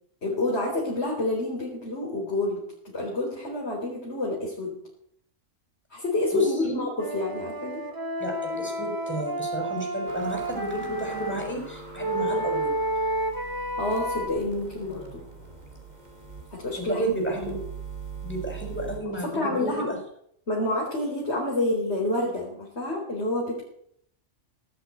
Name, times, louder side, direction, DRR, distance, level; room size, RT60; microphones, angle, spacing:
voice 1, 0.2-2.6 2.9-4.7 5.9-7.8 13.8-15.3 16.5-17.0 17.3-17.5 19.1-19.9 20.5-23.6, left 2 dB, 60° left, -3 dB, 4.5 m, -28 dB
voice 2, 6.3-6.8 8.2-12.7 16.8-17.6 18.2-20.0, right 1 dB, 10° left, 1 dB, 5.9 m, -32 dB
Wind instrument woodwind instrument, 7.0-11.4 12.0-14.3, right 1 dB, 15° right, 1.9 m, -30 dB
sound 1, 10.1-19.0, right 4 dB, 35° right, 3.2 m, -42 dB
18.0 x 8.2 x 9.4 m, 0.69 s
omnidirectional pair, 1.3 m